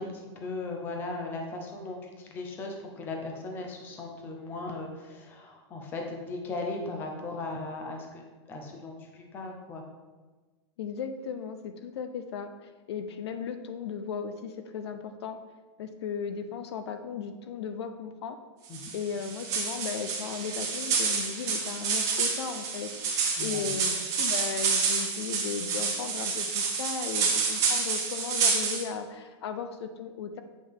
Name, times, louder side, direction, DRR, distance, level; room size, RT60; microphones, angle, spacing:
voice 1, 0.0-8.2 8.5-9.8 18.7-18.8 23.4-23.7, left 2 dB, 15° left, 2 dB, 0.7 m, -37 dB
voice 2, 10.8-15.4 15.8-18.4 18.9-22.9 23.4-30.4, left 6 dB, 65° left, 8 dB, 0.6 m, -36 dB
sound 1, 18.7-28.8, right 5 dB, 20° right, 1.1 m, -29 dB
8.5 x 5.6 x 3.6 m, 1.3 s
supercardioid pair, 175°, 15 cm